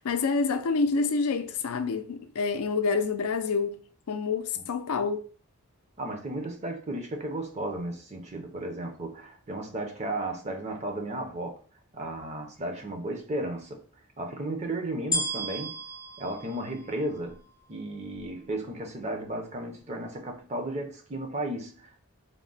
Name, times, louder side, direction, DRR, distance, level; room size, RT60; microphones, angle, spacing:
voice 1, 0.0-5.2, left 4 dB, 80° left, 0.4 m, -28 dB
voice 2, 6.0-11.6 11.9-13.8 14.2-15.8 16.2-17.4 17.7-22.0, right 1 dB, 30° right, 0.6 m, -34 dB
sound 1, 15.1-17.5 18.1-18.2, equal, 15° left, 0.4 m, -33 dB
3.6 x 2.1 x 3.9 m
head